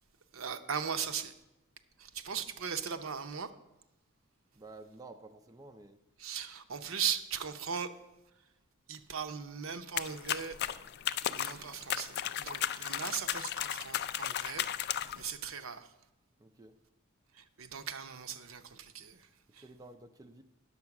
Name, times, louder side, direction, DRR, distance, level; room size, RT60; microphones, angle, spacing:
voice 1, 0.3-1.3 2.0-3.5 6.2-7.9 8.9-10.6 11.3-15.9 17.3-19.6, right 7 dB, 65° right, 0.7 m, -38 dB
voice 2, 4.5-6.0 16.4-16.8 19.6-20.4, right 2 dB, 15° right, 0.4 m, -51 dB
sound 1, 10.0-15.3, left 10 dB, 50° left, 0.4 m, -35 dB
9.6 x 7.1 x 5.9 m
head